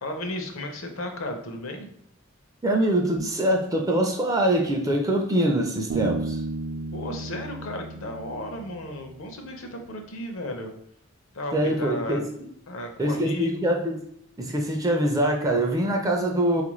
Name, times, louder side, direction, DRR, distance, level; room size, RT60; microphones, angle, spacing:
voice 1, 0.0-1.9 6.9-10.7 11.3-12.2 12.7-13.7, left 1 dB, 70° left, 4 dB, 0.6 m, -34 dB
voice 2, 2.6-6.4 11.5-12.3 13.0-14.1 14.4-16.6, right 1 dB, 15° right, 2 dB, 0.4 m, -24 dB
Bass guitar, 5.9-9.4, right 3 dB, 75° right, 0.6 m, -34 dB
4.0 x 2.4 x 3.0 m, 0.69 s
head